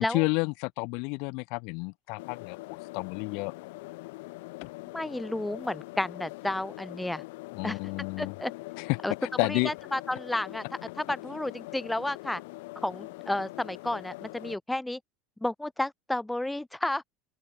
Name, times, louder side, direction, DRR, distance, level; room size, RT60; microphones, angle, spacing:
voice 1, 0.0-3.5 4.6-4.7 7.5-8.3 8.8-9.0 9.4-9.7, left 32 dB, 60° left, 6.4 m, -30 dB
sound 1, 2.2-14.6, left 23 dB, 85° left, 7.2 m, -43 dB
voice 2, 4.9-7.2 7.6-7.8 8.2-8.5 9.0-9.1 9.5-10.6 11.0-12.4 12.8-15.0 15.4-17.0, left 1 dB, 5° left, 1.6 m, -32 dB
open air
cardioid pair, 170°, 0 cm